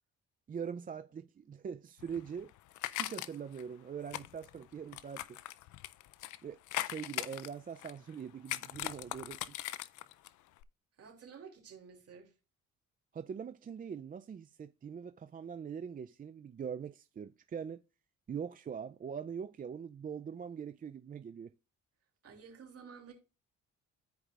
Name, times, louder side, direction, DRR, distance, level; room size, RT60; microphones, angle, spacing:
voice 1, 0.5-2.5 2.9-5.4 6.4-9.6 13.1-17.8 18.3-21.5, right 7 dB, 30° right, 0.4 m, -43 dB
sound 1, 2.0-3.6 4.1-6.4 6.7-8.1 8.5-10.3 10.6-10.7, left 15 dB, 75° left, 0.5 m, -40 dB
voice 2, 11.0-12.3 22.2-23.1, right 6 dB, 50° right, 2.8 m, -52 dB
14.0 x 4.9 x 2.4 m
cardioid pair, 90°, 30 cm